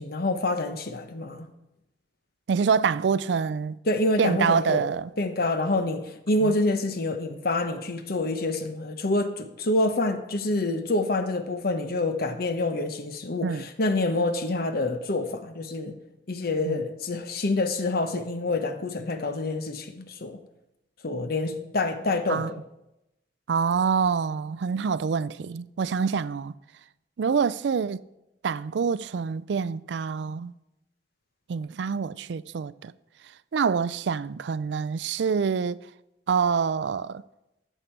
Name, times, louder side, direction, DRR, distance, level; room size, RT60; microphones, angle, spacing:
voice 1, 0.0-1.5 3.9-4.8 5.2-16.0 16.3-20.4 21.0-22.6, left 2 dB, 60° left, 1.0 m, -27 dB
voice 2, 2.5-3.8 4.2-5.1 6.4-6.6 13.4-13.6 16.7-16.9 22.3-22.5 23.5-26.5 27.2-28.0 28.4-30.5 31.5-32.9 33.5-35.8 36.3-37.2, right 6 dB, 70° right, 0.4 m, -26 dB
14.0 x 6.7 x 4.5 m
head